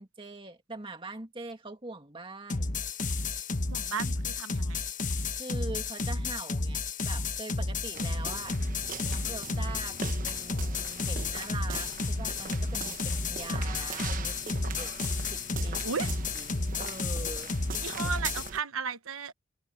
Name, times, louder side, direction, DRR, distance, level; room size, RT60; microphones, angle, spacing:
voice 1, 0.0-2.8 5.3-8.6 9.0-10.0 10.2-14.9 15.3-15.8 16.3-17.8, right 2 dB, 25° right, 2.1 m, -43 dB
sound 1, 2.5-18.5, left 3 dB, 40° left, 1.1 m, -32 dB
voice 2, 3.7-4.8 15.8-16.1 17.8-19.3, right 5 dB, 90° right, 1.2 m, -34 dB
sound 2, 7.9-18.6, right 5 dB, 40° right, 1.0 m, -41 dB
head